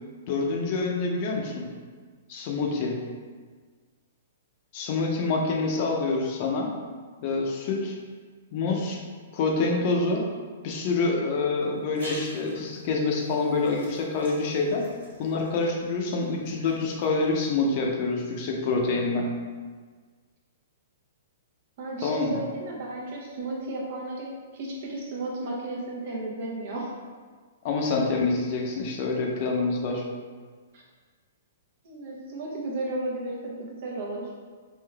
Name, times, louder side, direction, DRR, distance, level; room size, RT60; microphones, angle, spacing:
voice 1, 0.3-1.7 2.3-3.0 4.7-6.7 7.2-8.0 8.5-9.0 9.3-10.2 10.6-14.9 15.2-19.3 22.0-22.4 27.6-30.0, left 3 dB, 45° left, 0 dB, 0.6 m, -26 dB
sound 1, 11.6-17.7, right 1 dB, 90° right, 1.3 m, -47 dB
voice 2, 21.8-27.0 30.7-30.8 31.8-34.3, right 2 dB, 55° right, -3 dB, 1.0 m, -34 dB
3.7 x 2.5 x 3.3 m, 1.5 s
hypercardioid pair, 145°, 0 cm